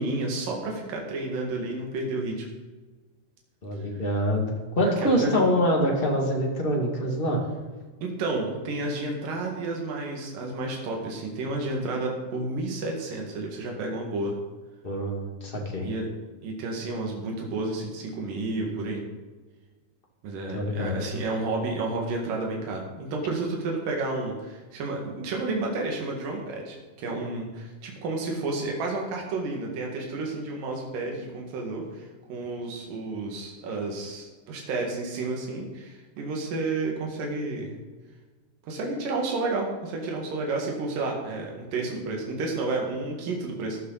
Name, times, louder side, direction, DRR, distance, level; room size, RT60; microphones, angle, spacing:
voice 1, 0.0-2.5 4.8-5.4 8.0-14.4 15.8-16.1 16.4-19.0 20.2-37.8 38.6-43.8, right 2 dB, 75° right, 0 dB, 3.5 m, -31 dB
voice 2, 3.6-7.4 14.8-15.9 20.5-20.9, equal, 20° left, -1 dB, 1.5 m, -25 dB
14.0 x 11.0 x 4.0 m, 1.3 s
omnidirectional pair, 4.0 m